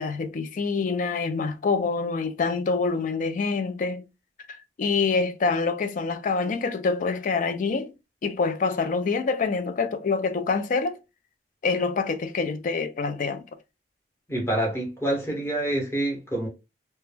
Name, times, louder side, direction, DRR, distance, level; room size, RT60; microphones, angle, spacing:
voice 1, 0.0-4.0 4.8-7.9 8.2-11.0 11.6-13.5, left 4 dB, 50° left, 0.3 m, -26 dB
voice 2, 14.3-16.5, right 1 dB, 15° left, 0.9 m, -27 dB
2.2 x 2.1 x 3.1 m
head